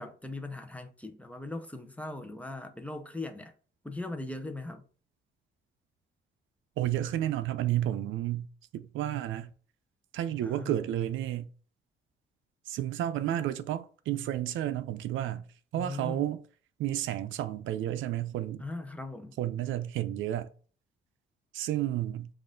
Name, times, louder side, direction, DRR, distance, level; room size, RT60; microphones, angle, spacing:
voice 1, 0.0-3.5 3.8-4.8 10.4-10.7 15.7-16.3 18.6-19.3, left 2 dB, 5° left, 0.7 m, -39 dB
voice 2, 6.8-8.5 8.7-9.5 10.1-11.5 12.7-15.4 15.7-16.4 16.8-18.6 19.4-20.5 21.5-22.3, right 12 dB, 80° right, 0.5 m, -31 dB
5.3 x 2.5 x 3.7 m
cardioid pair, 90°, 20 cm